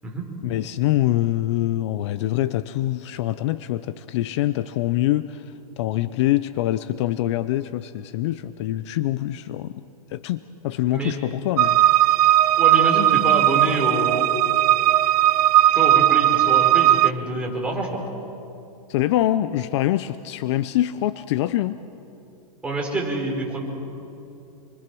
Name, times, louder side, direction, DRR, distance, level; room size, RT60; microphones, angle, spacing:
voice 1, 0.4-9.8 10.1-11.8 18.9-21.8, left 14 dB, 45° left, 14 dB, 0.6 m, -24 dB
sound 1, 11.6-17.1, right 12 dB, 75° right, 0.5 m, -17 dB
voice 2, 12.6-14.3 15.7-18.0 22.6-23.6, right 2 dB, 5° right, -2 dB, 4.6 m, -26 dB
28.0 x 24.0 x 6.2 m, 2.8 s
hypercardioid pair, 150°, 20 cm